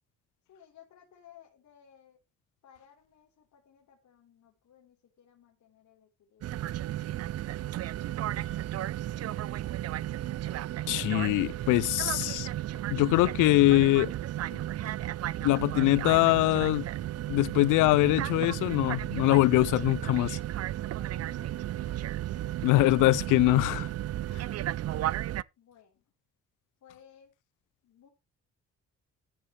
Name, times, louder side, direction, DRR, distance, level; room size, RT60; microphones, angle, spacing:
voice 1, 0.5-2.2 2.6-7.5 8.3-10.0 20.9-22.9 24.3-24.7 25.6-26.1 26.8-27.3 27.8-28.1, left 9 dB, 70° left, 4.2 m, -60 dB
sound 1, 6.4-25.4, right 13 dB, 55° right, 0.5 m, -34 dB
voice 2, 10.9-12.5 12.9-14.1 15.4-16.9 17.3-20.4 22.6-23.9, left 19 dB, 85° left, 0.5 m, -23 dB
14.5 x 8.1 x 3.3 m
cardioid pair, 90°, 30 cm